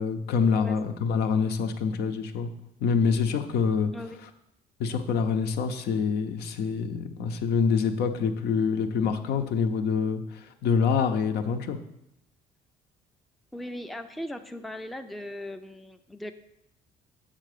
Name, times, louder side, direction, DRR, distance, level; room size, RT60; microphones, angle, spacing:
voice 1, 0.0-2.5 2.8-3.9 4.8-11.8, left 6 dB, 75° left, 7 dB, 0.8 m, -26 dB
voice 2, 13.5-16.3, left 1 dB, ahead, 7 dB, 0.4 m, -38 dB
7.4 x 3.8 x 6.6 m, 0.81 s
cardioid pair, 110°, 17 cm